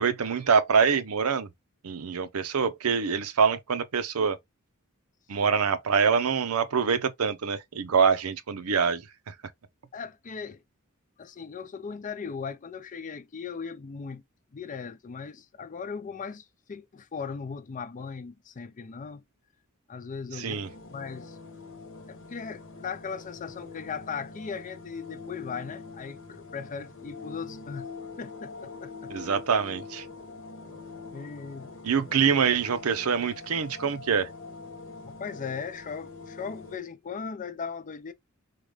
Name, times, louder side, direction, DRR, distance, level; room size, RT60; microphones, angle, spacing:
voice 1, 0.0-1.5 1.8-4.4 5.3-9.3 20.3-20.7 29.1-30.1 31.8-34.3, right 6 dB, 80° right, 0.6 m, -25 dB
voice 2, 9.9-10.6 11.2-14.2 14.5-19.2 19.9-20.6 20.9-21.4 22.1-27.9 28.2-29.1 31.1-31.7 35.0-38.1, left 5 dB, 35° left, 0.4 m, -38 dB
sound 1, 20.5-36.8, left 4 dB, 60° left, 1.0 m, -44 dB
3.7 x 2.3 x 3.2 m
head